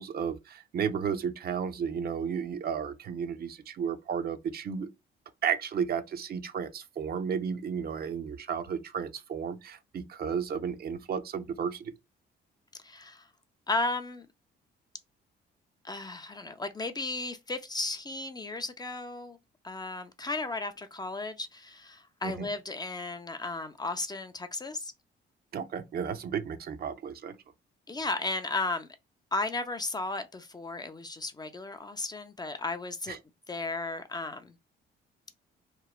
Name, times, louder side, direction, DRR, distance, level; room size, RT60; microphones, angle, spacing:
voice 1, 0.0-4.9 5.4-11.9 22.2-22.5 25.5-27.3 33.1-33.2, right 7 dB, 50° right, 0.5 m, -33 dB
voice 2, 12.8-13.3 13.7-14.3 15.8-19.4 19.6-24.9 27.9-28.9 29.3-33.2 33.5-34.6, left 2 dB, 20° left, 0.4 m, -34 dB
3.0 x 2.1 x 2.3 m
cardioid pair, 90°, 20 cm